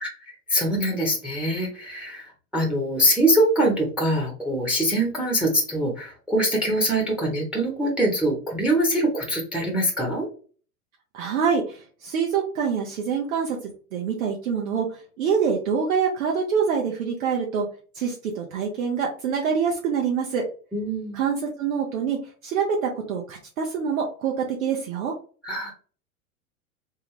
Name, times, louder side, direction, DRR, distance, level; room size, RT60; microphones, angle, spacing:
voice 1, 0.0-10.3 20.7-21.2 25.4-25.7, right 1 dB, ahead, -1 dB, 0.9 m, -23 dB
voice 2, 11.1-17.7 17.9-20.4 21.1-22.2 22.4-25.1, right 6 dB, 60° right, 0 dB, 1.0 m, -25 dB
3.5 x 2.2 x 3.1 m, 0.39 s
figure-of-eight pair, 95°, 46 cm